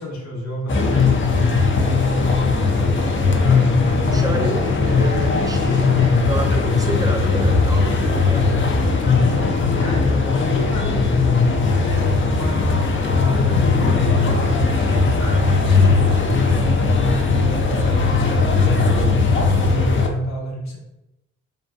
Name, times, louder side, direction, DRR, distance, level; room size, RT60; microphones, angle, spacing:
voice 1, 0.0-1.5 1.9-3.2 4.0-4.4 9.5-17.9 18.4-20.8, left 1 dB, 65° left, -1 dB, 0.8 m, -31 dB
sound 1, 0.7-20.1, left 4 dB, 40° left, 0.5 m, -18 dB
voice 2, 4.0-8.7 18.8-19.0, right 2 dB, 10° right, 3 dB, 0.5 m, -30 dB
2.5 x 2.2 x 2.3 m, 0.91 s
supercardioid pair, 45°, 30 cm